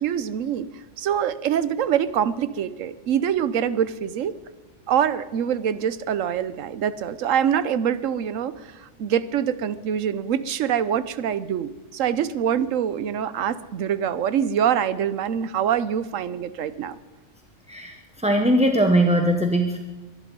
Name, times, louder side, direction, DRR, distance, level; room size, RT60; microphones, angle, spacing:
voice 1, 0.0-0.7 1.0-4.3 4.9-17.0, right 9 dB, 85° right, 15 dB, 1.1 m, -25 dB
voice 2, 18.2-19.8, right 1 dB, 5° right, 5 dB, 0.8 m, -20 dB
23.0 x 11.0 x 5.3 m, 1.2 s
omnidirectional pair, 1.3 m